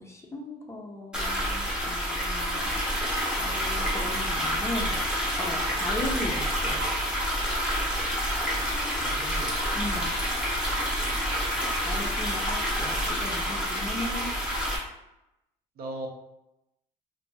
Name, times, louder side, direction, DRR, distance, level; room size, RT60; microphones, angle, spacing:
voice 1, 0.0-2.7 3.1-5.0 5.4-6.8 9.7-10.1 11.7-14.3, left 2 dB, 15° left, 0 dB, 0.4 m, -37 dB
sound 1, 1.1-14.8, equal, 5° right, 0.9 m, -28 dB
voice 2, 8.8-9.6 15.8-16.1, right 2 dB, 60° right, 1 dB, 0.6 m, -39 dB
2.9 x 2.5 x 2.3 m, 0.90 s
cardioid pair, 110°, 17 cm